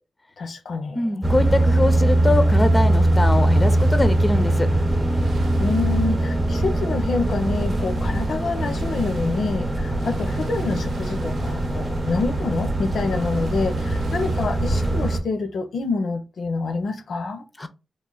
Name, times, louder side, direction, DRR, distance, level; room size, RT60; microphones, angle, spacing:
voice 1, 0.4-1.2 5.6-17.4, left 3 dB, 75° left, 0.5 m, -27 dB
voice 2, 0.9-4.7 17.6-17.7, left 2 dB, 20° left, 0.4 m, -23 dB
sound 1, 1.2-15.2, right 1 dB, 25° right, 0.7 m, -21 dB
sound 2, 2.5-15.2, right 4 dB, 80° right, 0.4 m, -40 dB
3.2 x 2.1 x 3.7 m
cardioid pair, 75°, 0 cm